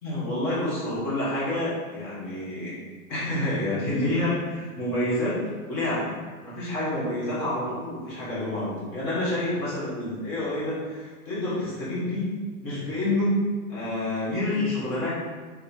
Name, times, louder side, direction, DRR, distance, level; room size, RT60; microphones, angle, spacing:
voice 1, 0.0-2.7 3.1-5.4 5.7-6.2 6.4-12.3 12.6-13.4 13.7-15.1, left 1 dB, 25° left, -9 dB, 1.2 m, -28 dB
3.2 x 3.2 x 2.7 m, 1.4 s
hypercardioid pair, 150°, 44 cm